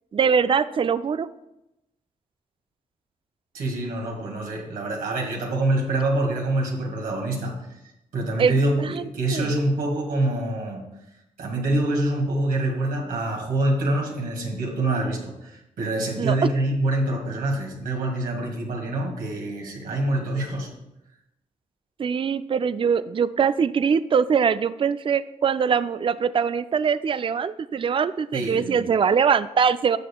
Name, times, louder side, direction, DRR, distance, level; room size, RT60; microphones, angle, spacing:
voice 1, 0.1-1.3 8.4-8.5 8.8-9.0 9.3-9.5 16.2-16.3 22.0-30.0, right 6 dB, 35° right, 14 dB, 0.4 m, -22 dB
voice 2, 3.5-7.6 8.1-10.8 11.4-20.7 28.3-28.9, right 1 dB, 80° right, 0 dB, 2.0 m, -25 dB
13.0 x 6.5 x 2.3 m, 0.90 s
supercardioid pair, 50°, 15 cm